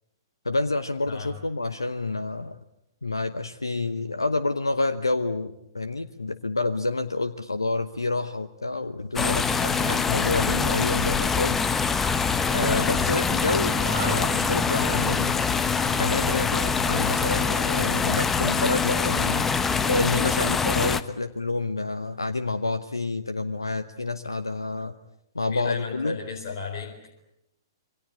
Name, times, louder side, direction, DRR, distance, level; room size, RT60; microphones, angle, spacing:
voice 1, 0.4-2.6 3.0-11.9 12.5-15.4 16.0-19.5 19.8-24.9 25.3-26.2, left 3 dB, 80° left, 11 dB, 1.0 m, -28 dB
sound 1, 9.2-21.0, left 5 dB, 10° left, 1.1 m, -24 dB
Zipper (clothing), 9.4-12.0 12.2-12.3 13.2-18.1, right 5 dB, 55° right, 6.8 m, -41 dB
voice 2, 12.6-13.1 25.5-27.1, left 5 dB, 40° left, 1 dB, 4.3 m, -34 dB
27.5 x 24.0 x 8.6 m, 0.84 s
figure-of-eight pair, 115°, 2 cm